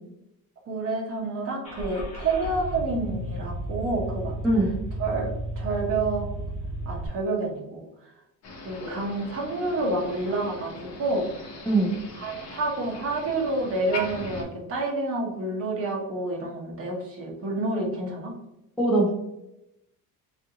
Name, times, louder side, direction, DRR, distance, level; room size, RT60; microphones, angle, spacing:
voice 1, 0.7-4.4 5.0-6.3 6.8-7.8 8.6-11.6 12.2-18.4, right 2 dB, 35° right, -1 dB, 0.9 m, -29 dB
Car / Engine starting, 1.6-7.1, right 1 dB, 20° left, 1.0 m, -33 dB
Motor vehicle (road), 8.4-14.4, left 2 dB, 45° left, 0.8 m, -39 dB
voice 2, 18.8-19.1, right 2 dB, ahead, -4 dB, 0.4 m, -21 dB
3.5 x 2.5 x 2.8 m, 0.87 s
cardioid pair, 155°, 38 cm